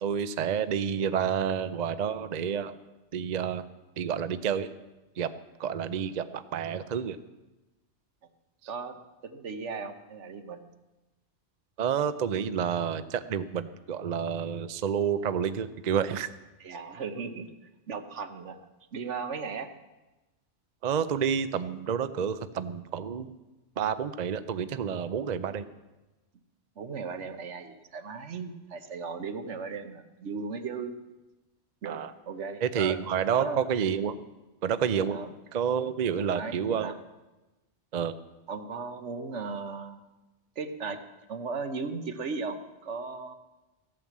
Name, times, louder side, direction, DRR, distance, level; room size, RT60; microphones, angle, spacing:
voice 1, 0.0-2.7 3.1-3.6 4.0-4.7 5.2-5.3 5.6-7.2 11.8-16.3 20.8-23.4 23.8-25.6 31.9-32.1 32.6-34.2 34.6-35.2 35.5-36.9 37.9-38.1, right 7 dB, 45° right, 12 dB, 0.6 m, -29 dB
voice 2, 8.7-10.6 16.6-17.5 17.9-18.6 18.9-19.7 26.8-30.9 31.8-33.0 33.3-33.6 35.1-35.3 36.2-36.9 38.5-40.0 40.6-41.0 41.3-43.3, right 4 dB, 75° right, 8 dB, 1.3 m, -36 dB
15.0 x 9.1 x 7.3 m, 1.1 s
omnidirectional pair, 1.2 m